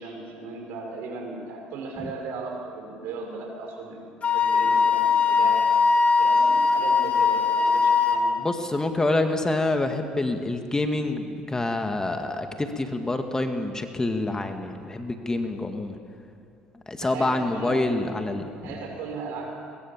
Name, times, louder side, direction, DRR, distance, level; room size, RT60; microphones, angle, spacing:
voice 1, 0.0-4.1 4.3-5.7 6.2-8.4 17.0-17.8 18.6-19.5, right 4 dB, 70° right, 1 dB, 6.1 m, -36 dB
Wind instrument woodwind instrument, 4.2-8.2, left 5 dB, 40° left, 2.5 m, -20 dB
voice 2, 8.4-16.0 16.9-18.7, left 2 dB, 15° left, 6 dB, 2.0 m, -27 dB
22.5 x 22.0 x 7.4 m, 2.4 s
supercardioid pair, 75°, 4 cm